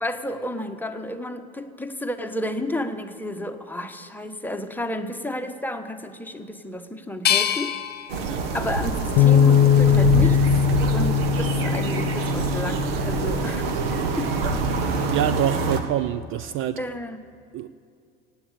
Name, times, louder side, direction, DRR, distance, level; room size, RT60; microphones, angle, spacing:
voice 1, 0.0-7.8 8.5-10.4 10.9-13.7 14.2-14.8 16.8-17.3, left 1 dB, 5° left, 6 dB, 1.1 m, -31 dB
sound 1, 7.2-10.2 10.7-11.5, left 10 dB, 30° left, 1.1 m, -29 dB
sound 2, 8.1-15.8, right 4 dB, 70° right, 1.4 m, -26 dB
sound 3, 9.2-15.4, left 8 dB, 55° left, 0.5 m, -21 dB
voice 2, 15.1-16.8 17.5-17.7, right 12 dB, 40° right, 14 dB, 0.5 m, -26 dB
17.0 x 8.7 x 8.5 m, 2.4 s
figure-of-eight pair, 70°, 31 cm